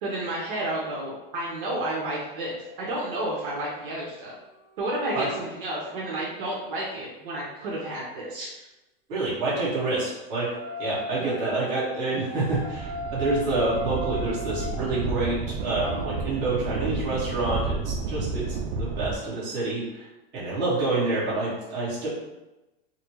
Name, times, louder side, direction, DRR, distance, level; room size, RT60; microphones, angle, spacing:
voice 1, 0.0-4.3 4.8-8.6, right 1 dB, 65° right, -5 dB, 1.0 m, -31 dB
sound 1, 2.4-7.6 9.5-17.0, left 2 dB, 20° right, 0.6 m, -40 dB
voice 2, 9.1-20.1 20.3-22.1, right 2 dB, 35° right, -7 dB, 1.3 m, -28 dB
sound 2, 12.4-19.2, right 4 dB, 80° right, 0.6 m, -31 dB
4.1 x 2.0 x 3.0 m, 1.0 s
supercardioid pair, 170°, 29 cm